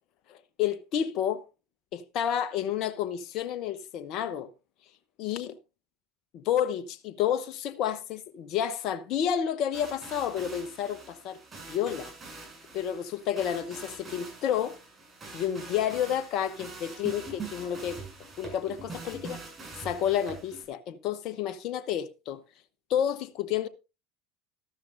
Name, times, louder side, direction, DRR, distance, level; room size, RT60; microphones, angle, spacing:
voice 1, 0.3-1.4 1.9-4.5 5.2-5.6 6.3-11.4 11.7-12.1 12.7-14.8 15.3-18.0 18.4-19.4 19.8-22.4 22.9-23.7, left 9 dB, 55° left, 0.9 m, -30 dB
sound 1, 9.7-20.7, right 3 dB, 25° right, 7.2 m, -44 dB
13.0 x 12.5 x 2.6 m
hypercardioid pair, 75°, 0 cm